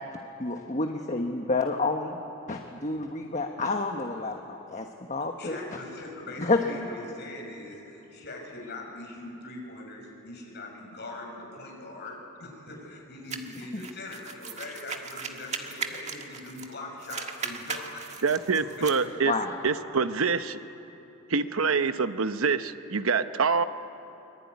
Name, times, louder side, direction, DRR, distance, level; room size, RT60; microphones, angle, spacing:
voice 1, 0.4-2.2 2.5-5.6 6.4-6.9 13.7-13.8 19.2-19.5, left 3 dB, 35° left, 3 dB, 1.3 m, -29 dB
voice 2, 5.4-18.0 18.5-19.4, left 2 dB, 55° left, 0 dB, 6.3 m, -42 dB
sound 1, 13.3-16.7 17.0-19.0, right 5 dB, 35° right, 1.7 m, -37 dB
voice 3, 18.2-19.3 19.6-20.6 21.3-23.6, right 5 dB, 85° right, 11 dB, 0.9 m, -25 dB
24.0 x 23.5 x 9.6 m, 3.0 s
head